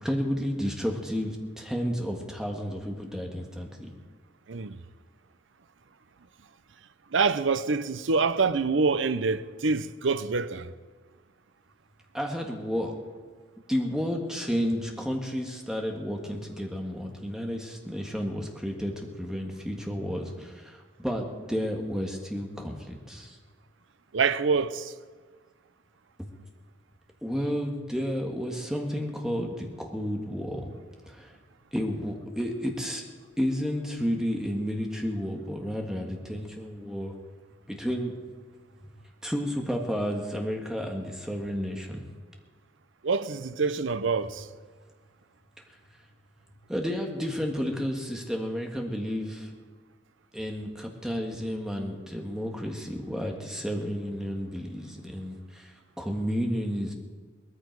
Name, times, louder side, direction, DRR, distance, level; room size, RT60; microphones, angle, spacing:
voice 1, 0.0-3.9 12.1-12.9 13.7-23.4 26.2-26.3 27.2-30.7 31.1-31.4 31.7-33.0 33.4-37.1 37.7-38.1 39.2-42.0 46.7-49.5 50.3-56.9, equal, 5° right, 1.6 m, -31 dB
voice 2, 7.1-10.7 24.1-24.9 43.0-44.5, right 4 dB, 75° right, 0.6 m, -26 dB
19.0 x 14.0 x 4.7 m
head